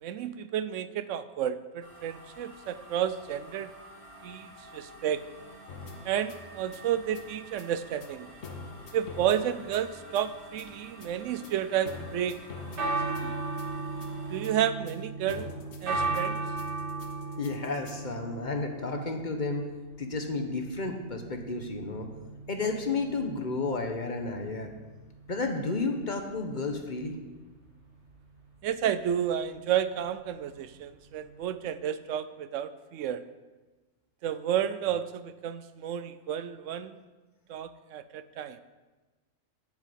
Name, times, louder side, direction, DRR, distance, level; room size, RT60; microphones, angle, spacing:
voice 1, 0.0-3.7 4.2-5.2 6.0-8.3 8.9-12.4 12.7-13.3 14.3-15.5 15.8-16.4 28.6-33.2 34.2-37.0 37.5-38.6, right 9 dB, 85° right, 13 dB, 1.0 m, -31 dB
sound 1, 1.8-14.5, right 1 dB, 25° right, 1.8 m, -50 dB
sound 2, 5.7-18.0, left 3 dB, 90° left, 1.5 m, -45 dB
sound 3, 12.7-31.5, right 3 dB, 65° right, 2.2 m, -37 dB
voice 2, 17.4-19.7 20.0-22.1 22.5-24.7 25.3-27.2, left 3 dB, 40° left, 4 dB, 1.1 m, -32 dB
8.3 x 6.5 x 8.3 m, 1.2 s
omnidirectional pair, 1.3 m